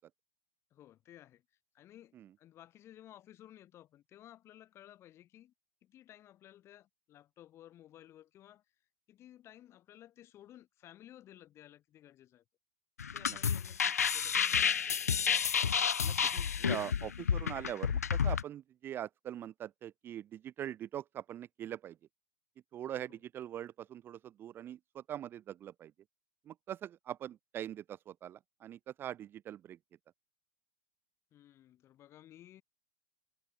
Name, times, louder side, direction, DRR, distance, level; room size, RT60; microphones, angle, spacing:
voice 1, 0.7-1.4 1.7-5.5 5.8-8.6 9.1-12.4 13.1-14.8 23.1-23.2 31.3-32.6, left 12 dB, 30° left, 3.9 m, -56 dB
sound 1, 13.0-18.4, left 7 dB, 80° left, 0.5 m, -30 dB
voice 2, 16.0-22.0 22.7-25.9 26.5-29.8, right 11 dB, 25° right, 0.5 m, -43 dB
figure-of-eight pair, 100°, 8 cm